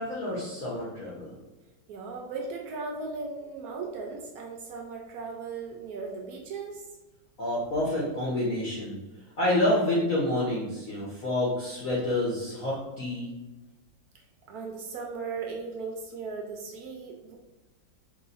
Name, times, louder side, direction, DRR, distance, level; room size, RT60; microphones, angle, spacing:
voice 1, 0.0-1.3 7.4-9.0 9.4-13.3, left 1 dB, 60° left, -6 dB, 1.0 m, -28 dB
voice 2, 1.9-6.8 14.5-17.3, right 4 dB, 75° right, 1 dB, 0.9 m, -37 dB
3.0 x 2.8 x 4.0 m, 1.1 s
omnidirectional pair, 2.0 m